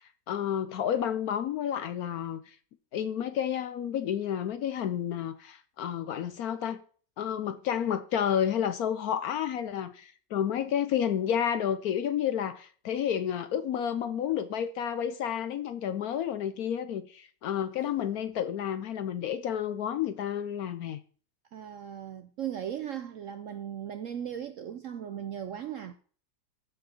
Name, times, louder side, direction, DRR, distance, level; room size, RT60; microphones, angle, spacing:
voice 1, 0.3-2.5 2.9-6.8 7.2-21.0, left 9 dB, 65° left, 1.0 m, -30 dB
voice 2, 21.5-25.9, right 9 dB, 65° right, 0.7 m, -37 dB
14.5 x 4.9 x 4.4 m
omnidirectional pair, 1.9 m